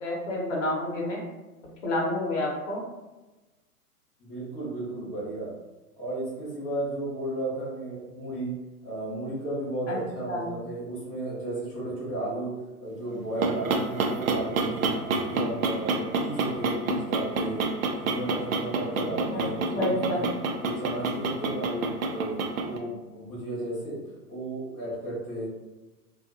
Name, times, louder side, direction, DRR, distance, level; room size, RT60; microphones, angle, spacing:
voice 1, 0.0-1.2 1.8-2.8 9.9-10.0 10.3-10.5 19.3-19.5 19.7-20.2, left 1 dB, 50° left, -2 dB, 0.9 m, -29 dB
voice 2, 4.2-5.5 6.0-8.5 8.8-12.5 12.8-14.9 15.3-20.2 20.6-24.0 24.3-25.5, right 1 dB, 15° left, -9 dB, 0.6 m, -34 dB
sound 1, 13.1-22.8, right 3 dB, 65° right, 0.5 m, -28 dB
2.5 x 2.3 x 2.5 m, 1.1 s
figure-of-eight pair, 110°, 46 cm